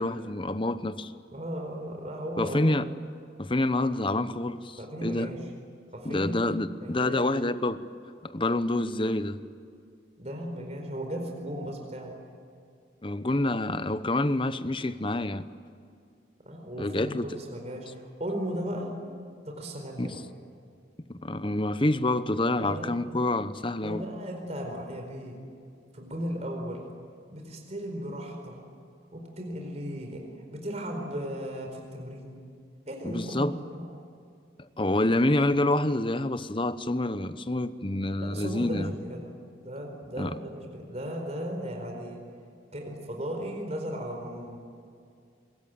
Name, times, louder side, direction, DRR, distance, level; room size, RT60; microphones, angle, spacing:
voice 1, 0.0-1.1 2.4-2.9 3.4-5.3 6.0-7.8 8.2-9.4 13.0-15.5 16.8-17.3 20.0-20.1 21.1-24.0 33.0-33.5 34.8-38.9 40.2-40.3, left 1 dB, 25° left, 12 dB, 1.0 m, -27 dB
voice 2, 1.3-2.6 4.8-5.4 5.9-6.5 6.8-7.3 10.2-12.2 16.4-18.9 19.4-20.2 22.6-23.1 23.7-25.4 25.9-26.8 27.3-28.6 29.1-32.4 32.9-33.8 38.2-39.3 39.6-42.2 42.7-44.6, equal, 35° right, 2 dB, 4.5 m, -36 dB
26.0 x 22.5 x 9.3 m, 2.4 s
head